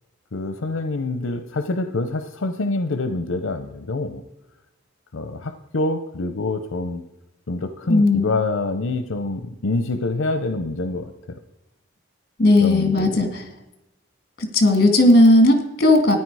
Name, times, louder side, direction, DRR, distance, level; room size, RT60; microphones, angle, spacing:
voice 1, 0.3-4.2 5.1-7.0 7.5-11.4 12.6-13.3, left 2 dB, 80° left, 9 dB, 0.7 m, -26 dB
voice 2, 7.9-8.3 12.4-13.3 14.4-16.2, left 1 dB, 50° left, 5 dB, 2.1 m, -15 dB
14.0 x 9.7 x 4.8 m, 0.98 s
head